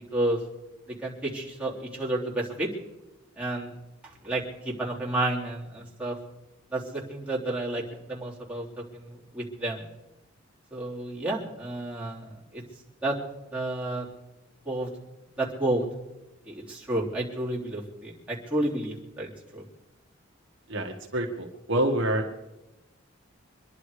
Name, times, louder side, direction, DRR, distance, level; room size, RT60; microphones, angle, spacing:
voice 1, 1.0-2.7 3.4-3.7 4.2-6.2 6.7-7.8 8.1-8.7 8.9-9.9 10.7-12.6 13.0-13.2 13.5-14.1 14.7-14.9 15.4-15.8 16.5-19.6, right 1 dB, 5° right, -6 dB, 3.4 m, -31 dB
voice 2, 20.7-22.3, right 1 dB, 65° right, 2 dB, 1.6 m, -27 dB
25.0 x 11.0 x 4.9 m, 0.99 s
head